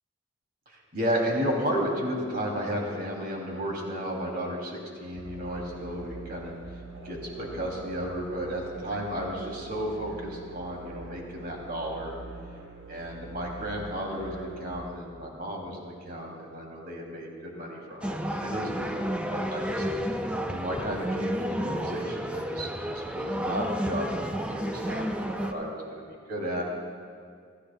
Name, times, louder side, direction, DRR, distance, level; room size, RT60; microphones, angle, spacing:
voice 1, 0.7-6.5 7.0-12.1 12.9-19.8 20.5-26.6, equal, 50° right, -1 dB, 2.7 m, -33 dB
sound 1, 5.2-14.8, right 3 dB, 80° right, 1.9 m, -44 dB
sound 2, 18.0-25.5, equal, 5° right, 0.5 m, -31 dB
23.5 x 13.5 x 2.2 m, 2.2 s
head